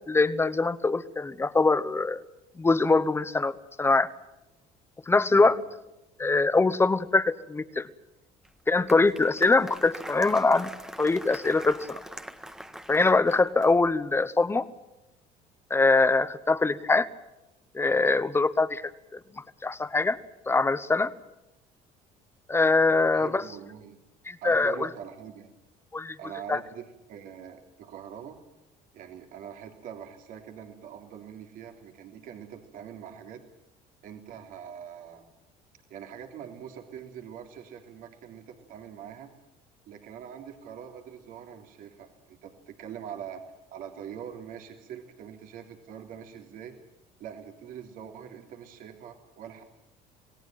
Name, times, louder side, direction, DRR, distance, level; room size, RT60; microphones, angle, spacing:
voice 1, 0.1-2.2 2.6-3.5 3.8-4.1 5.1-5.6 6.2-7.9 8.7-10.7 11.0-12.0 12.9-14.7 15.7-17.1 17.7-18.8 19.1-19.2 19.6-20.2 20.5-21.1 22.5-23.4 24.3-24.9 25.9-26.2 26.5-26.6, left 3 dB, 15° left, 14 dB, 1.1 m, -23 dB
Applause, 8.4-13.9, right 1 dB, 5° right, 1.6 m, -43 dB
voice 2, 22.9-24.0 24.4-25.5 26.2-28.4 28.9-33.4 34.0-35.2 35.9-39.3 39.9-43.4 43.7-46.8 47.2-49.6, right 8 dB, 65° right, 4 dB, 3.2 m, -43 dB
27.0 x 18.0 x 9.3 m, 0.95 s
cardioid pair, 115°, 15 cm